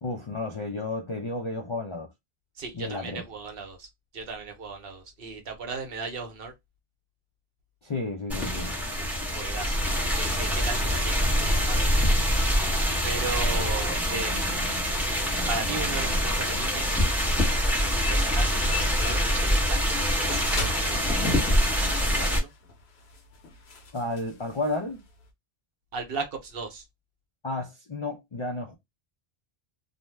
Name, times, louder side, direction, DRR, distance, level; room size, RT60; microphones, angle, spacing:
voice 1, 0.0-2.1 2.7-3.2 7.8-8.8 23.9-25.0 27.4-28.8, left 2 dB, 45° left, 0.4 m, -32 dB
voice 2, 2.6-3.9 4.1-6.5 9.0-9.1 9.3-9.8 10.1-12.5 13.0-14.7 15.5-17.0 17.5-17.6 18.1-20.4 20.7-22.5 25.9-26.8, right 4 dB, 65° right, 0.9 m, -37 dB
sound 1, 8.3-22.4, equal, ahead, 0.8 m, -25 dB
sound 2, 20.1-25.3, left 2 dB, 75° left, 1.0 m, -39 dB
2.5 x 2.1 x 3.2 m
omnidirectional pair, 1.1 m